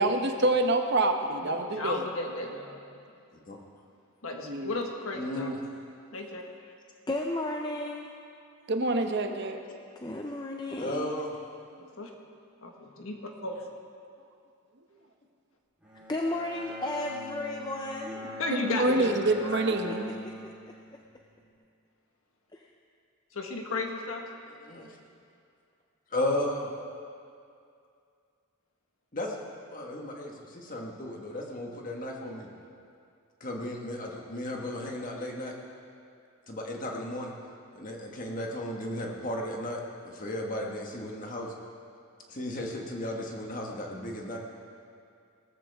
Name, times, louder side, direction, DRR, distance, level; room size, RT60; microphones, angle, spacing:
voice 1, 0.0-2.0 4.4-4.7 8.7-9.6 18.6-20.2, right 2 dB, 50° right, 5 dB, 0.9 m, -26 dB
voice 2, 1.4-3.0 4.2-5.5 6.1-6.7 11.8-12.1 12.6-13.2 13.4-13.7 18.4-19.2 19.5-19.7 23.3-24.4, left 2 dB, 70° left, 2 dB, 1.4 m, -35 dB
voice 3, 5.1-5.5 10.8-11.3 24.7-24.9 26.1-26.7 29.1-29.4 29.7-32.5 33.4-35.5 36.5-37.3 37.7-41.5 42.3-44.4, left 1 dB, 35° left, 0 dB, 1.5 m, -34 dB
voice 4, 7.1-8.1 10.0-11.1 16.1-18.2 19.9-20.3 20.6-20.7 22.5-22.7, left 1 dB, 20° left, 1 dB, 0.5 m, -34 dB
Bowed string instrument, 15.8-21.0, left 2 dB, 5° right, 3.5 m, -42 dB
18.0 x 13.5 x 3.6 m, 2.4 s
head